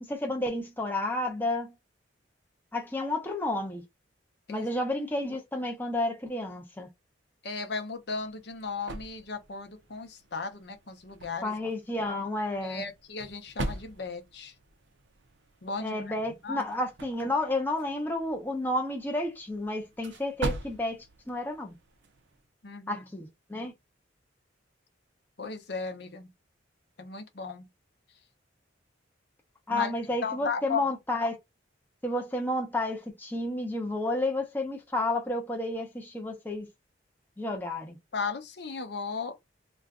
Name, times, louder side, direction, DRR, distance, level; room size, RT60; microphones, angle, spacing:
voice 1, 0.0-1.7 2.7-3.8 4.5-6.9 11.4-12.8 15.8-21.7 22.9-23.7 29.7-31.4 32.0-36.7 37.4-38.0, left 1 dB, 10° left, 0.6 m, -31 dB
voice 2, 4.5-4.9 7.4-11.5 12.6-14.5 15.6-16.6 22.6-23.1 25.4-26.3 27.0-27.7 29.7-29.9 30.2-30.9 38.1-39.3, left 4 dB, 55° left, 0.7 m, -36 dB
sound 1, 7.9-22.5, right 1 dB, 65° right, 0.5 m, -43 dB
2.5 x 2.2 x 3.6 m
head